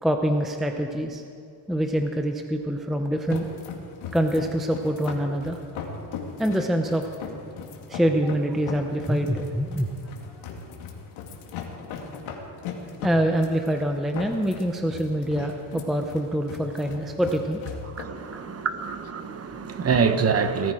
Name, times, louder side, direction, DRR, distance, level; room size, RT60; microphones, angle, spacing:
voice 1, 0.0-1.2 1.7-3.5 4.1-5.6 6.4-7.0 7.9-9.9 13.0-17.6 18.3-18.5, equal, ahead, 0.6 m, -25 dB
sound 1, 3.2-18.0, left 5 dB, 85° left, 2.3 m, -38 dB
voice 2, 18.0-20.7, right 5 dB, 30° right, 1.0 m, -25 dB
18.0 x 14.5 x 4.9 m
cardioid pair, 155°, 47 cm